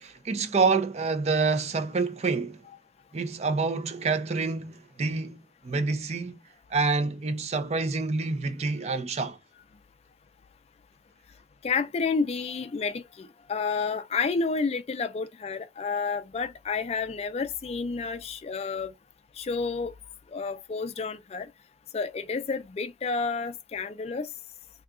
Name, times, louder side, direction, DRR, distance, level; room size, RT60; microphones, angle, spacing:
voice 1, 0.0-2.6 3.1-6.4 6.7-9.4, right 4 dB, 35° right, 0.4 m, -27 dB
voice 2, 11.6-18.9 19.4-19.9 20.3-21.5 21.9-24.3, left 4 dB, 35° left, 0.3 m, -30 dB
2.7 x 2.3 x 3.5 m
head